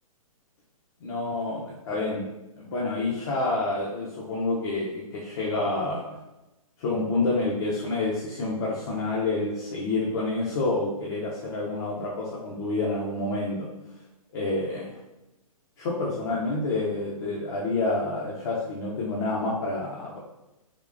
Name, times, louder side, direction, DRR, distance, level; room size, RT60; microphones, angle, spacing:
voice 1, 1.0-2.2 2.6-6.0 6.8-13.7 14.3-14.9 15.8-20.2, left 2 dB, 40° left, -4 dB, 0.6 m, -28 dB
3.6 x 3.0 x 2.4 m, 0.98 s
figure-of-eight pair, 120°, 19 cm